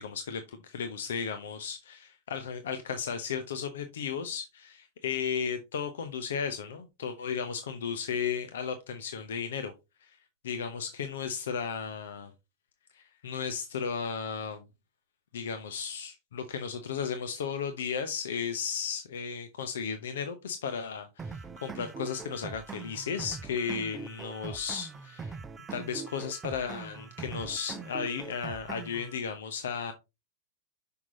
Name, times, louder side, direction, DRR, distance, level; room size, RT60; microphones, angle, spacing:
voice 1, 0.0-9.7 10.0-10.2 10.4-12.3 12.9-14.6 15.3-25.4 25.7-29.9, left 6 dB, 60° left, 0.9 m, -35 dB
sound 1, 21.2-29.2, right 5 dB, 15° right, 0.6 m, -42 dB
6.1 x 5.7 x 4.0 m
figure-of-eight pair, 90°, 0 cm